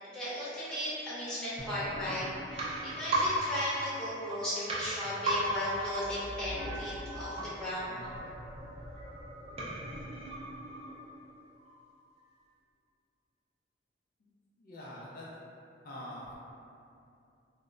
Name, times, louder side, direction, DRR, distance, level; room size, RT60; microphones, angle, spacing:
voice 1, 0.0-8.0, left 1 dB, 5° left, -12 dB, 0.8 m, -36 dB
sound 1, 1.6-11.3 11.6-11.7, right 1 dB, 35° right, 0.4 m, -36 dB
voice 2, 14.6-15.2 15.8-16.4, left 1 dB, 50° left, -6 dB, 0.4 m, -44 dB
2.0 x 2.0 x 3.6 m, 2.6 s
head